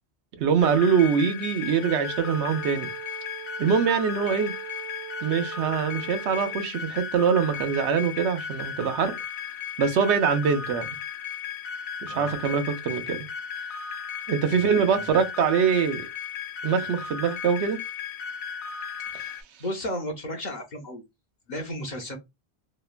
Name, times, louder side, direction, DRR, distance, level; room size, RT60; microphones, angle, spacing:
voice 1, 0.4-2.9 3.6-4.5 5.2-9.1 9.8-11.0 12.0-13.2 14.3-16.1 16.6-17.8, right 6 dB, 80° right, 0.9 m, -23 dB
sound 1, 0.6-19.4, left 7 dB, 80° left, 0.9 m, -35 dB
Bowed string instrument, 1.6-6.6, right 12 dB, 40° right, 0.7 m, -41 dB
voice 2, 14.5-15.2 18.9-19.3 19.6-21.0 21.5-22.2, left 1 dB, 50° left, 0.6 m, -35 dB
3.0 x 2.1 x 2.4 m
omnidirectional pair, 1.1 m